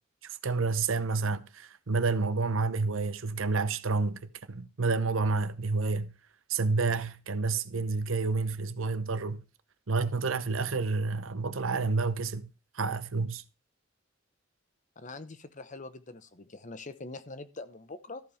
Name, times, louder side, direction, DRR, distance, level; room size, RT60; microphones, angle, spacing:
voice 1, 0.2-6.1 6.5-9.4 9.9-12.5 12.7-13.4, right 4 dB, 85° right, 0.9 m, -29 dB
voice 2, 15.0-18.2, left 3 dB, 40° left, 0.9 m, -43 dB
14.0 x 5.3 x 5.6 m
head